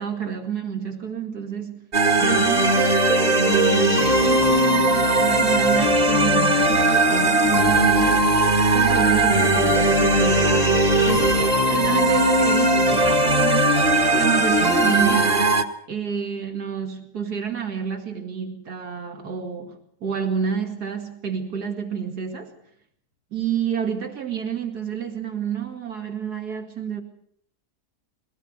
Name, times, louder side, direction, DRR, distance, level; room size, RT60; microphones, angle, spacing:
voice 1, 0.0-1.8 2.2-11.4 11.7-15.4 15.9-22.5 23.3-27.0, right 8 dB, 80° right, 4 dB, 2.8 m, -29 dB
sound 1, 1.9-15.6, right 1 dB, 25° right, 1.7 m, -18 dB
23.0 x 17.5 x 7.9 m, 0.67 s
omnidirectional pair, 1.7 m